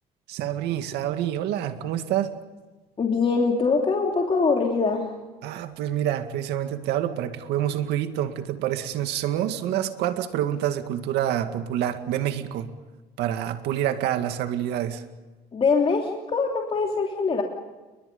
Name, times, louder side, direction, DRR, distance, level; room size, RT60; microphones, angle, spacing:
voice 1, 0.3-2.3 5.4-12.7 13.2-15.0, right 11 dB, 85° right, 8 dB, 2.1 m, -27 dB
voice 2, 3.0-5.2 15.5-17.4, left 4 dB, 35° left, 1 dB, 3.1 m, -23 dB
30.0 x 23.0 x 5.4 m, 1.2 s
cardioid pair, 110°, 17 cm